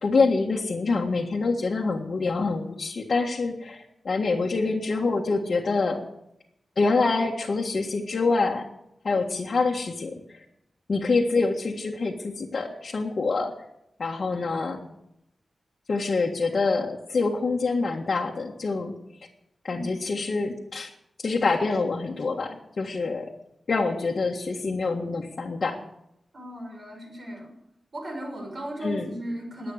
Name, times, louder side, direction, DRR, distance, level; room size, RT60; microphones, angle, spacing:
voice 1, 0.0-6.0 6.8-8.7 9.0-10.4 10.9-13.5 14.0-14.8 15.9-18.9 19.6-20.9 21.2-23.3 23.7-25.8 28.8-29.1, left 3 dB, 50° left, -2 dB, 1.7 m, -26 dB
voice 2, 19.7-20.0 26.3-27.5 27.9-29.7, right 1 dB, 45° right, 1 dB, 6.5 m, -36 dB
21.0 x 8.7 x 6.6 m, 0.82 s
wide cardioid pair, 135°, 0 cm